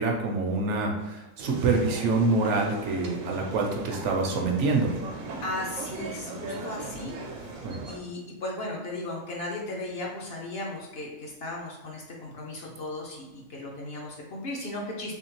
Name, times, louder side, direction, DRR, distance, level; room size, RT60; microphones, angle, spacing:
voice 1, 0.0-4.9 7.6-7.8, right 3 dB, 65° right, 1 dB, 0.8 m, -26 dB
sound 1, 1.4-8.0, right 3 dB, 90° right, 1.1 m, -39 dB
voice 2, 5.4-15.1, left 2 dB, 60° left, -2 dB, 0.7 m, -36 dB
3.5 x 3.1 x 3.0 m, 1.0 s
omnidirectional pair, 1.4 m